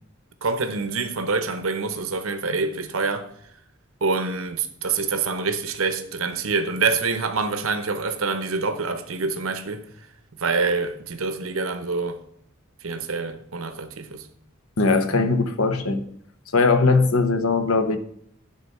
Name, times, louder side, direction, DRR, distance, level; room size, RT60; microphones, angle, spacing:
voice 1, 0.4-3.3 4.0-9.8 10.3-12.2 12.8-14.3, right 4 dB, 75° right, 0.9 m, -26 dB
voice 2, 14.8-16.0 16.5-18.0, left 3 dB, 80° left, 1.0 m, -20 dB
10.5 x 3.9 x 6.5 m
head